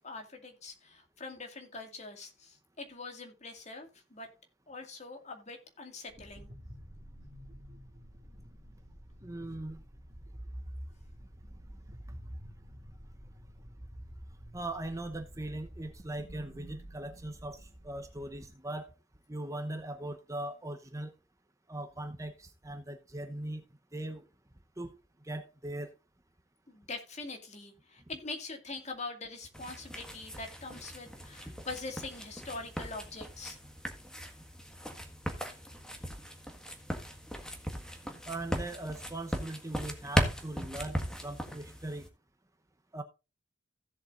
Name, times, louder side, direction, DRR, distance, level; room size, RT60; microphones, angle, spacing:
voice 1, 0.0-4.3 4.7-6.5 26.7-33.6, left 3 dB, 40° left, 2.1 m, -43 dB
sound 1, 6.1-18.5, equal, 40° right, 2.5 m, -49 dB
voice 2, 9.2-9.8 14.5-18.9 19.3-21.1 21.7-23.6 23.9-24.3 24.8-25.9 38.3-42.1 42.9-43.0, right 1 dB, 15° right, 0.9 m, -40 dB
sound 2, 29.5-42.1, equal, 5° left, 1.5 m, -38 dB
16.0 x 7.5 x 2.5 m
head